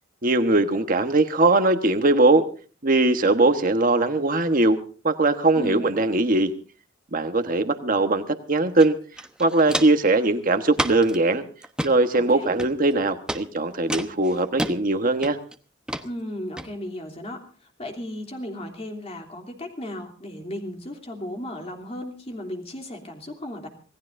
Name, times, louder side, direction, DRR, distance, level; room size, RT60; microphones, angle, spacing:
voice 1, 0.2-2.4 2.8-4.8 5.0-6.5 7.1-9.0 9.4-11.5 11.8-15.4, right 2 dB, 45° right, 7 dB, 1.3 m, -20 dB
voice 2, 5.5-5.9 12.1-12.5 16.0-23.7, left 1 dB, 30° left, 3 dB, 3.0 m, -35 dB
Walk footsteps, 8.8-8.9 9.2-10.1 10.7-11.2 11.6-11.9 12.6-12.9 13.3-13.4 13.9-14.7 15.2-15.5 15.9-16.0 16.6-16.7, right 1 dB, 5° right, 1.0 m, -29 dB
26.5 x 18.0 x 2.7 m, 0.38 s
head